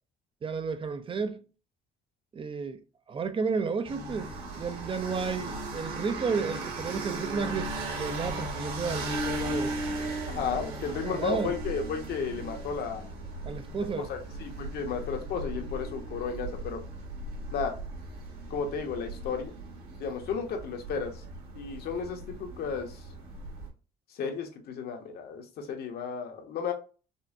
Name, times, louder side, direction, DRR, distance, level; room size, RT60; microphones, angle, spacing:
voice 1, 0.4-1.4 2.3-2.8 3.1-9.7 11.0-11.5 13.4-14.1, right 5 dB, 30° right, 0.5 m, -32 dB
sound 1, 3.8-23.7, right 2 dB, 65° right, 1.9 m, -37 dB
voice 2, 10.3-13.1 14.0-16.8 17.5-17.7 18.5-19.5 20.0-21.2 21.5-23.0 24.1-26.7, left 6 dB, 65° left, 1.1 m, -33 dB
5.4 x 2.2 x 2.6 m
cardioid pair, 110°, 17 cm